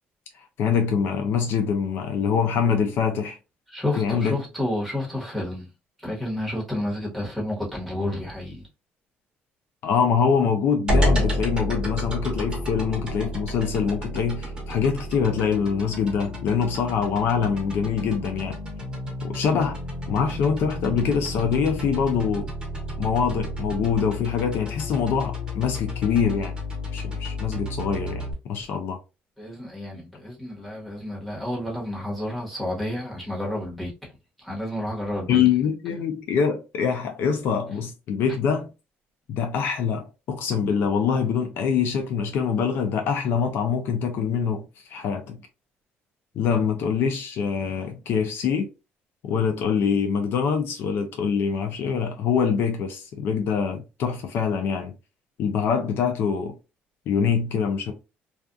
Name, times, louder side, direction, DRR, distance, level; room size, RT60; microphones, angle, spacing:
voice 1, 0.3-3.4 4.0-4.3 9.8-18.6 19.2-19.8 20.1-22.5 23.0-26.5 26.9-29.0 35.3-38.7 39.3-45.4 46.4-48.7 49.2-54.9 55.4-56.6 57.1-57.9, left 6 dB, 65° left, 0.5 m, -24 dB
voice 2, 3.7-5.7 6.0-8.7 29.4-34.1 34.4-35.4, left 1 dB, ahead, 1.2 m, -30 dB
sound 1, 10.9-28.3, left 1 dB, 20° right, 1.0 m, -30 dB
2.4 x 2.4 x 2.5 m
cardioid pair, 135°, 4 cm